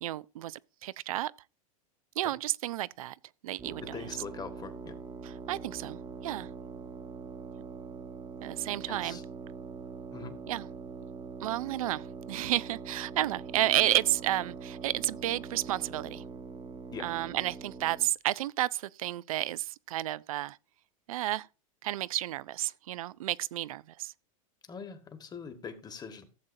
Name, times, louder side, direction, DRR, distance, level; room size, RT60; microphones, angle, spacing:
voice 1, 0.0-1.3 2.2-3.2 3.4-4.0 5.2-6.5 8.4-9.2 10.5-10.7 11.4-16.2 17.0-20.6 21.1-21.5 21.8-24.1, right 14 dB, 80° right, 0.4 m, -31 dB
sound 1, 3.6-18.1, right 5 dB, 25° right, 1.1 m, -43 dB
voice 2, 3.8-4.9 8.6-9.2 10.1-10.3 16.9-17.1 24.7-26.2, left 5 dB, 20° left, 1.6 m, -43 dB
14.5 x 7.4 x 2.7 m
hypercardioid pair, 105°, 18 cm